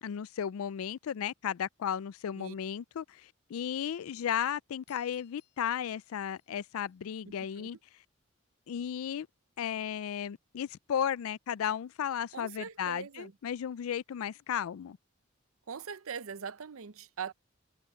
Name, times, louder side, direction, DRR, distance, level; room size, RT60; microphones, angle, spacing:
voice 1, 0.0-3.2 3.5-7.8 8.7-9.3 9.6-15.0, left 9 dB, 85° left, 0.4 m, -34 dB
sound 1, 4.9-7.4, left 13 dB, 55° left, 4.7 m, -67 dB
voice 2, 7.4-7.7 12.3-13.3 15.7-17.3, right 6 dB, 85° right, 0.7 m, -41 dB
head